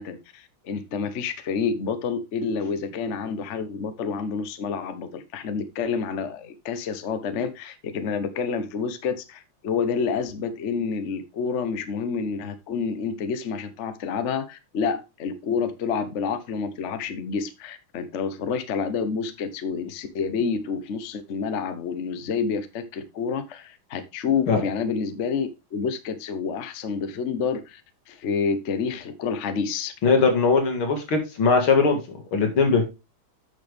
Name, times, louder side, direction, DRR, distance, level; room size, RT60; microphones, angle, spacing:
voice 1, 0.0-27.8 28.1-29.9, left 5 dB, 45° left, 10 dB, 1.0 m, -28 dB
voice 2, 30.0-32.8, left 4 dB, 85° left, 4 dB, 2.9 m, -20 dB
8.9 x 6.5 x 3.4 m, 0.25 s
omnidirectional pair, 2.2 m